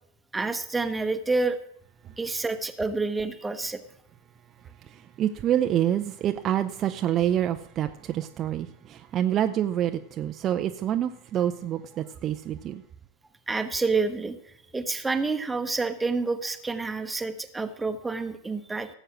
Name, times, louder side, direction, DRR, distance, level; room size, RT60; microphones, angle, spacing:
voice 1, 0.3-1.6 2.2-3.8 13.5-14.4 14.7-18.9, right 3 dB, 10° right, 1.1 m, -28 dB
voice 2, 4.9-12.8, right 11 dB, 30° right, 0.7 m, -27 dB
17.5 x 7.9 x 6.1 m
figure-of-eight pair, 90°, 0 cm